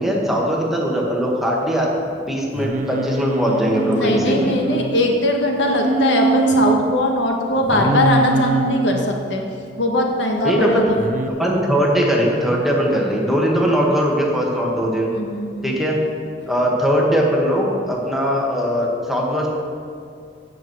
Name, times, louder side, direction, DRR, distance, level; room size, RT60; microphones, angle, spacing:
voice 1, 0.0-1.9 2.3-4.5 10.4-10.9 11.4-15.1 15.6-16.0 16.5-19.5, equal, ahead, -3 dB, 1.5 m, -20 dB
Singing, 2.5-5.0 5.6-6.8 7.7-9.0 11.0-11.3, right 4 dB, 45° right, 0.5 m, -22 dB
voice 2, 3.9-9.4 9.8-11.0 15.2-15.7, left 1 dB, 80° left, 1 dB, 1.4 m, -20 dB
8.2 x 6.2 x 7.7 m, 2.3 s
head